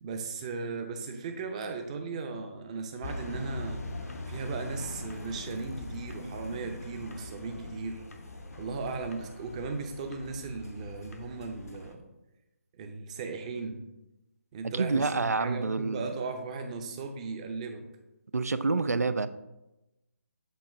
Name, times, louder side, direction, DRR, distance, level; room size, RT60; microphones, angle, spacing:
voice 1, 0.0-3.8 4.3-8.0 8.5-12.0 12.8-13.8 14.5-17.8, right 4 dB, 25° right, 6 dB, 0.7 m, -37 dB
sound 1, 3.0-11.9, left 1 dB, 75° left, 1.0 m, -42 dB
voice 2, 14.6-16.1 18.3-19.3, right 3 dB, 85° right, 13 dB, 0.4 m, -28 dB
7.7 x 3.0 x 4.8 m, 0.96 s
figure-of-eight pair, 150°, 8 cm